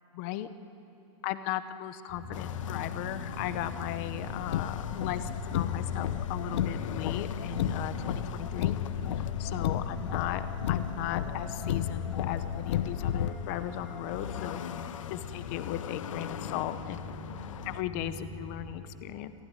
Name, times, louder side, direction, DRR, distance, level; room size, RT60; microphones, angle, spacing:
voice 1, 0.1-0.5 1.2-8.8 9.2-14.6 15.1-17.1 17.7-19.3, left 13 dB, 30° left, 12 dB, 0.8 m, -37 dB
sound 1, 2.1-18.7, left 4 dB, 5° right, 6.5 m, -40 dB
sound 2, 2.3-17.8, left 9 dB, 90° left, 1.1 m, -42 dB
Car, 4.3-13.3, left 10 dB, 60° left, 0.9 m, -33 dB
27.5 x 15.5 x 9.9 m, 3.0 s
supercardioid pair, 180°, 16 cm